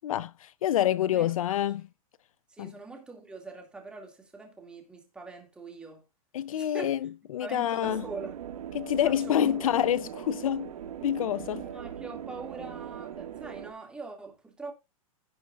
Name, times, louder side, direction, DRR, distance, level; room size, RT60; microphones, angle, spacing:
voice 1, 0.0-1.9 2.6-2.7 6.3-8.0 8.7-10.7 11.0-11.6, left 11 dB, 70° left, 0.6 m, -27 dB
voice 2, 1.0-1.5 2.5-6.0 6.5-6.9 7.4-8.3 9.0-9.6 11.5-14.7, right 3 dB, 5° right, 2.2 m, -43 dB
sound 1, 7.8-13.7, right 10 dB, 80° right, 1.9 m, -40 dB
16.5 x 6.2 x 2.4 m
supercardioid pair, 175°, 18 cm